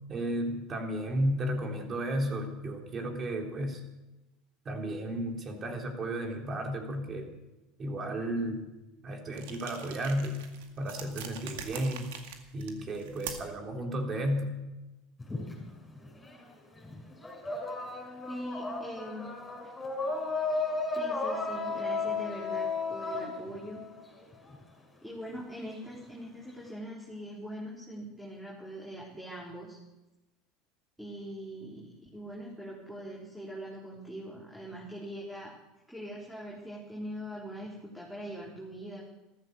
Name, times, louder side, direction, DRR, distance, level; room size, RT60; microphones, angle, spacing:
voice 1, 0.1-3.8 4.7-7.3 7.8-8.7 9.0-10.4 10.8-12.1 12.5-14.5, right 1 dB, 35° right, 2 dB, 3.7 m, -33 dB
sound 1, 9.3-13.6, right 8 dB, 75° right, 2.0 m, -44 dB
sound 2, 15.2-16.5 16.8-24.6, left 3 dB, 15° left, 6.3 m, -34 dB
voice 2, 18.3-19.3 19.6-19.7 21.0-23.8 25.0-29.8 31.0-35.6 35.9-39.1, equal, ahead, -5 dB, 4.1 m, -42 dB
14.0 x 13.5 x 6.8 m, 1.0 s
hypercardioid pair, 95°, 0 cm